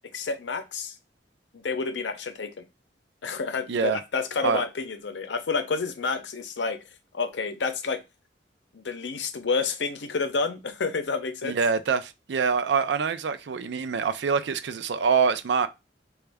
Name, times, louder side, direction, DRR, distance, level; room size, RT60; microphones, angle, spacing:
voice 1, 0.1-0.9 1.5-2.6 3.2-6.8 7.1-8.0 8.7-11.6, left 4 dB, 80° left, 0.6 m, -29 dB
voice 2, 3.7-4.0 4.4-4.6 11.4-15.7, right 5 dB, 70° right, 0.4 m, -25 dB
4.0 x 2.3 x 3.4 m
head